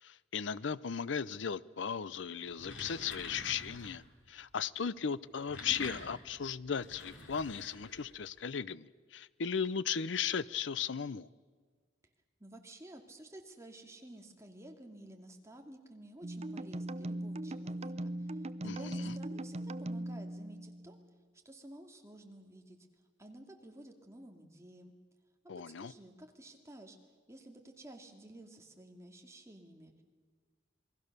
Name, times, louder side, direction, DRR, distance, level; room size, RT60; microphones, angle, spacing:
voice 1, 0.0-11.3 18.6-19.2 25.5-25.9, left 7 dB, 70° left, 0.6 m, -37 dB
sound 1, 2.4-4.1 5.2-8.3, left 3 dB, 85° left, 3.3 m, -47 dB
voice 2, 12.4-21.0 21.4-22.8 23.2-24.9 25.8-27.0 27.3-30.0, right 1 dB, 15° right, 2.3 m, -52 dB
sound 2, 16.2-21.1, right 1 dB, 35° right, 0.6 m, -40 dB
28.0 x 20.5 x 6.7 m
head